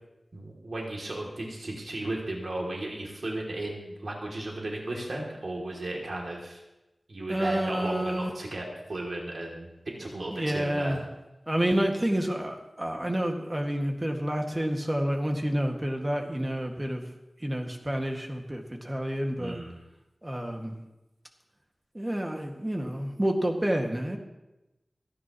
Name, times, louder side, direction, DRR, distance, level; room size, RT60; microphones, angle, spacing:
voice 1, 0.3-6.6 7.1-11.0 19.4-19.7, right 1 dB, 65° right, -2 dB, 2.7 m, -35 dB
voice 2, 7.3-8.3 10.0-11.0 11.5-17.0 17.4-19.6 20.2-20.8 21.9-24.2, right 1 dB, 20° right, 2 dB, 1.9 m, -29 dB
28.0 x 10.0 x 3.0 m, 0.99 s
wide cardioid pair, 85°, 0 cm